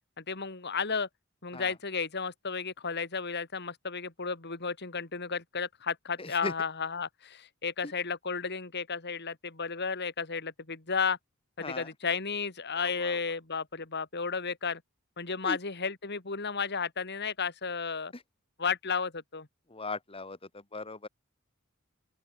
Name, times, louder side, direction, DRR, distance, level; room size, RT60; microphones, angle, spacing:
voice 1, 0.2-1.1 1.4-11.2 11.6-14.8 15.2-18.1 18.6-19.5, left 5 dB, 50° left, 2.5 m, -33 dB
voice 2, 6.2-6.5 11.6-11.9 12.8-13.2 15.4-15.6 19.7-20.4 20.7-21.1, left 3 dB, 25° left, 1.9 m, -38 dB
open air
head